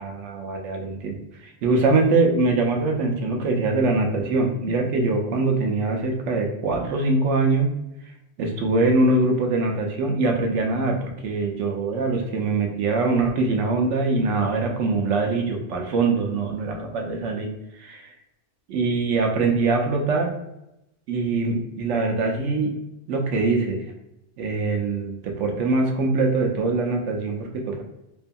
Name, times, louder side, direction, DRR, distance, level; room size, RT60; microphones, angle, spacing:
voice 1, 0.0-7.7 8.4-18.1 18.7-20.3 21.1-22.7 23.1-23.8 24.4-27.8, right 3 dB, 80° right, 2 dB, 0.9 m, -23 dB
2.7 x 2.6 x 2.2 m, 0.86 s
omnidirectional pair, 1.2 m